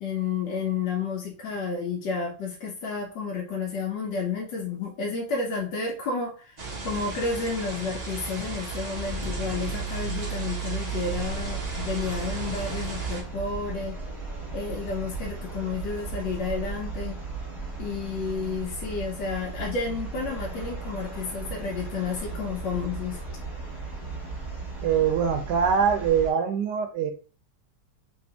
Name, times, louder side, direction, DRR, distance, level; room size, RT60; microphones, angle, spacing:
voice 1, 0.0-6.5 6.8-14.0 14.5-17.2 17.8-23.2, left 4 dB, 85° left, 1.4 m, -31 dB
sound 1, 6.6-13.2, right 4 dB, 50° right, 0.5 m, -33 dB
sound 2, 11.1-26.3, right 3 dB, ahead, 1.3 m, -36 dB
voice 2, 24.8-27.1, right 7 dB, 85° right, 1.2 m, -23 dB
3.4 x 2.8 x 2.8 m
omnidirectional pair, 1.9 m